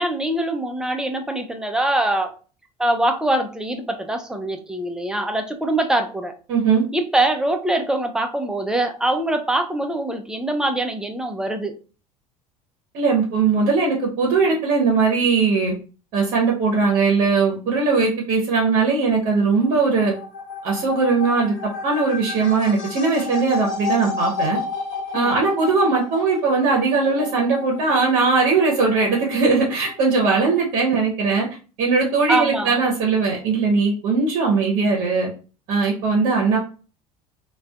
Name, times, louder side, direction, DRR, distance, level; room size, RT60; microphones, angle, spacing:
voice 1, 0.0-2.3 2.8-6.3 6.9-11.8 25.1-25.3 32.3-32.8, right 1 dB, 5° right, 5 dB, 0.4 m, -23 dB
voice 2, 6.5-6.8 12.9-15.7 16.1-20.1 20.6-21.5 21.8-24.6 25.1-31.5 31.8-35.3 35.7-36.6, right 4 dB, 50° right, -1 dB, 0.8 m, -19 dB
sound 1, 19.5-30.7, left 4 dB, 55° left, 1.2 m, -32 dB
2.4 x 2.2 x 2.3 m, 0.36 s
figure-of-eight pair, 65°, 19 cm